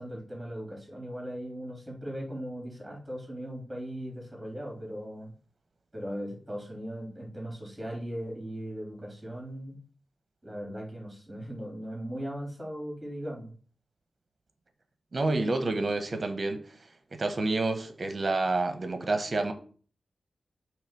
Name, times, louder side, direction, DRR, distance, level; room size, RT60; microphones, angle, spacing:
voice 1, 0.0-5.3 5.9-9.8 10.4-13.5, equal, 10° right, 3.4 m, -38 dB
voice 2, 15.1-19.5, right 2 dB, 40° right, 1.1 m, -29 dB
6.9 x 3.3 x 6.2 m
wide cardioid pair, 90°, 0 cm